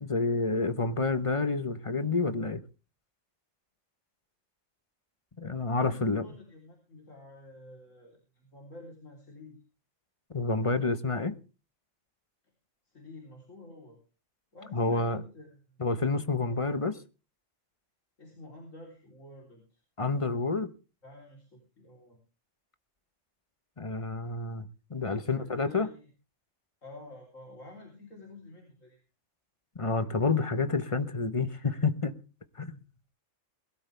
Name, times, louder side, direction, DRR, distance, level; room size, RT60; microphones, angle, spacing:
voice 1, 0.0-2.6 5.4-6.2 10.3-11.3 14.7-15.2 15.8-17.0 20.0-20.7 23.8-25.9 29.7-32.1 32.6-32.8, left 3 dB, 25° left, 1.1 m, -29 dB
voice 2, 5.8-9.6 12.8-14.0 14.5-15.8 16.5-16.6 18.2-19.8 21.0-22.2 25.2-26.1 26.8-29.0, left 2 dB, 80° left, 4.1 m, -50 dB
21.5 x 12.5 x 3.4 m
omnidirectional pair, 1.3 m